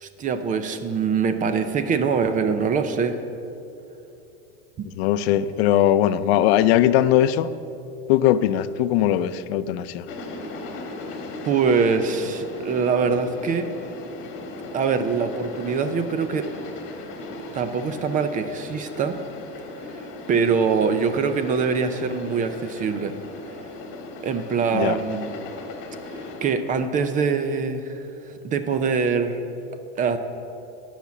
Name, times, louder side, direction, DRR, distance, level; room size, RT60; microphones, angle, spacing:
voice 1, 0.0-3.2 4.8-4.9 11.4-13.7 14.7-16.5 17.5-19.2 20.3-23.1 24.2-25.4 26.4-28.0 28.3-29.4 30.0-30.2, right 5 dB, 25° right, 10 dB, 0.5 m, -23 dB
voice 2, 5.0-7.5 8.1-10.0 24.7-25.0, left 12 dB, 85° left, 13 dB, 0.6 m, -20 dB
sound 1, 10.1-26.5, left 2 dB, 40° left, 1.6 m, -37 dB
10.5 x 5.9 x 8.2 m, 2.7 s
supercardioid pair, 150°, 31 cm